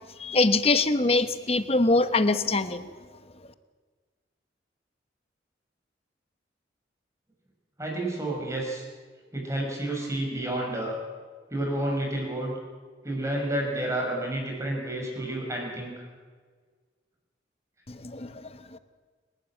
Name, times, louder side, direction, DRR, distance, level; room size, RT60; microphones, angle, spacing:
voice 1, 0.2-2.9 17.9-18.8, left 2 dB, 35° left, 11 dB, 1.1 m, -24 dB
voice 2, 7.8-8.8 9.3-11.0 11.5-12.6 13.0-16.0, right 1 dB, 15° right, 0 dB, 6.0 m, -30 dB
28.5 x 12.5 x 9.0 m, 1.5 s
head